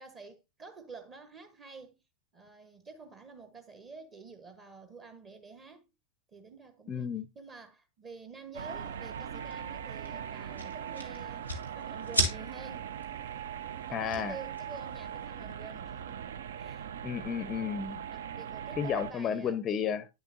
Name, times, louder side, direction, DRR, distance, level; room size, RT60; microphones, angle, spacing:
voice 1, 0.0-2.0 2.3-5.9 6.3-11.5 11.7-12.9 13.9-16.2 16.6-16.9 18.1-19.6, right 4 dB, 30° right, 0.9 m, -49 dB
voice 2, 6.9-7.3 13.9-14.4 17.0-18.0 18.8-20.1, left 7 dB, 25° left, 0.5 m, -32 dB
sound 1, 8.5-19.1, right 9 dB, 60° right, 0.4 m, -40 dB
sound 2, 8.5-15.3, right 1 dB, 90° right, 1.5 m, -38 dB
9.8 x 6.9 x 2.6 m
figure-of-eight pair, 90°, 0 cm